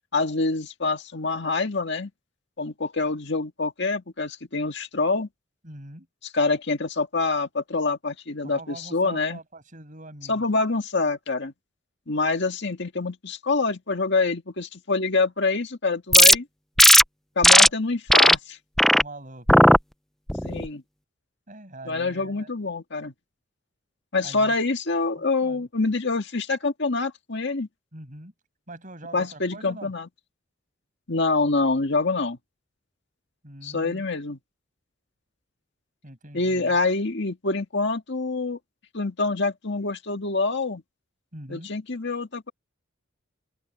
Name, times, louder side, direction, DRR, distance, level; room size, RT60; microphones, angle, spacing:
voice 1, 0.1-2.1 2.6-5.3 6.3-9.4 10.3-11.5 12.1-16.5 17.4-18.6 20.4-20.8 21.9-23.1 24.1-27.7 29.1-30.1 31.1-32.4 33.6-34.4 36.3-38.6 38.9-40.8 41.5-42.5, left 3 dB, 60° left, 1.9 m, -26 dB
voice 2, 5.6-6.1 8.4-10.4 17.5-17.7 18.9-19.5 21.5-22.5 24.2-24.6 25.2-25.7 27.9-28.3 28.7-29.9 33.4-34.0 36.0-36.8 41.3-41.7, right 1 dB, 40° right, 7.1 m, -43 dB
sound 1, 16.1-16.3 16.8-17.0 17.4-17.7 18.1-18.3 18.8-19.0 19.5-19.8 20.3-20.6, left 1 dB, ahead, 0.5 m, -14 dB
open air
head